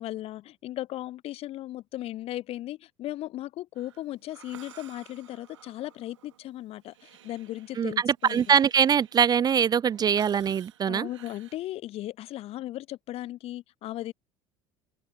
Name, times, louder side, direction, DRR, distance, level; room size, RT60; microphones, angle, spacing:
voice 1, 0.0-8.4 10.9-14.1, left 14 dB, 40° left, 0.5 m, -37 dB
Breathing, 3.8-11.6, right 11 dB, 75° right, 5.0 m, -54 dB
voice 2, 7.8-11.1, right 7 dB, 25° right, 0.4 m, -23 dB
open air
figure-of-eight pair, 65°, 16 cm